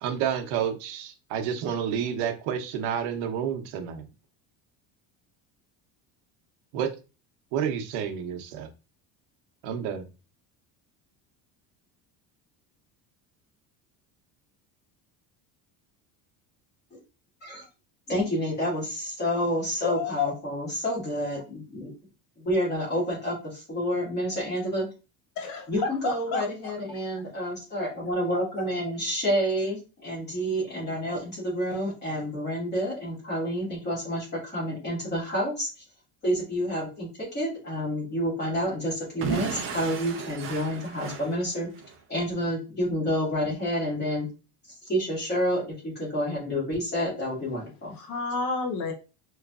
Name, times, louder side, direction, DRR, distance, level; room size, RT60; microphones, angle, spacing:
voice 1, 0.0-4.0 6.7-6.9 7.5-8.7 9.6-10.0, right 8 dB, 80° right, 0.8 m, -29 dB
voice 2, 18.1-21.9 22.4-24.9 25.7-35.7 36.2-41.7 42.1-44.3 44.9-48.0, equal, 25° left, 1.9 m, -29 dB
voice 3, 19.8-20.3 25.4-26.4 26.9-27.0 48.0-48.9, left 4 dB, 55° left, 0.7 m, -29 dB
Explosion / Shatter, 39.2-42.0, right 6 dB, 35° right, 0.4 m, -34 dB
4.7 x 3.1 x 2.3 m
cardioid pair, 175°, 41 cm